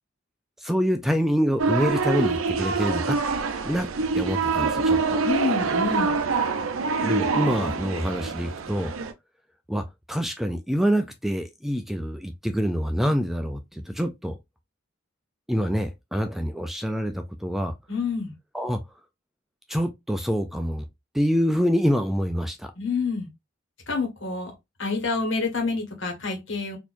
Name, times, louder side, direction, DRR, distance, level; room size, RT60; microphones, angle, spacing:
voice 1, 0.6-3.2 3.6-3.9 4.1-5.2 7.0-8.9 9.7-14.4 15.5-17.7 18.5-18.8 19.7-20.8 21.1-22.7, equal, ahead, 0.3 m, -26 dB
sound 1, 1.6-9.1, right 4 dB, 85° right, 0.6 m, -25 dB
voice 2, 5.2-6.2 17.9-18.3 22.7-23.3 23.9-24.5 24.8-26.8, left 4 dB, 65° left, 1.5 m, -27 dB
4.2 x 2.9 x 2.5 m
head